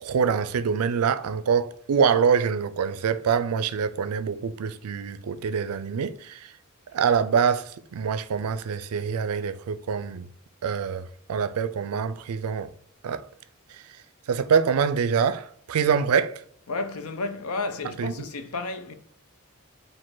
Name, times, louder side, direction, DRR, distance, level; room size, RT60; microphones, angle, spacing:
voice 1, 0.0-6.5 6.9-10.3 10.6-12.7 13.0-13.3 13.7-13.8 14.3-16.4 18.0-18.3, right 6 dB, 85° right, 0.4 m, -25 dB
voice 2, 16.7-18.9, left 3 dB, 75° left, 0.6 m, -32 dB
4.8 x 2.5 x 3.8 m
head